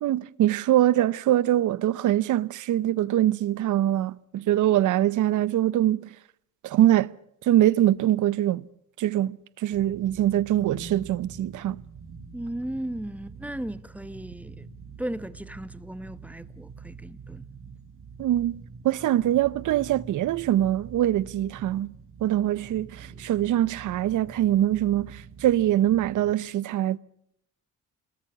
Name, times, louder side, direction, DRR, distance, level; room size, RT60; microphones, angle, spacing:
voice 1, 0.0-6.1 6.6-7.1 7.4-8.6 9.0-11.8 18.2-21.9 22.2-27.0, right 13 dB, 85° right, 0.8 m, -23 dB
sound 1, 9.7-26.3, right 5 dB, 45° right, 7.8 m, -45 dB
voice 2, 12.3-14.7 15.0-17.4, right 1 dB, 5° right, 1.0 m, -36 dB
27.0 x 20.5 x 6.9 m
cardioid pair, 115°, 30 cm